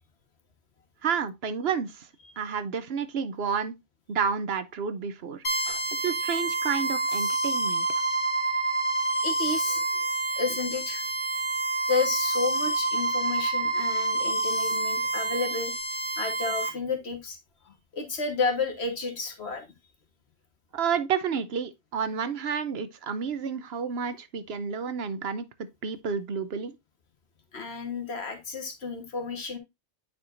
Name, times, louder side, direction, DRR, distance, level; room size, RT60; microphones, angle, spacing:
voice 1, 1.0-2.1 2.4-3.7 4.1-5.4 6.0-7.8 20.7-25.5 25.8-26.7, right 6 dB, 70° right, 1.0 m, -30 dB
sound 1, 5.4-16.7, right 2 dB, 50° left, 1.8 m, -28 dB
voice 2, 9.2-10.1 10.4-11.1 11.9-15.8 16.2-17.4 17.6-19.7 27.5-29.6, left 4 dB, 70° left, 1.7 m, -31 dB
9.5 x 4.6 x 2.5 m
omnidirectional pair, 1.1 m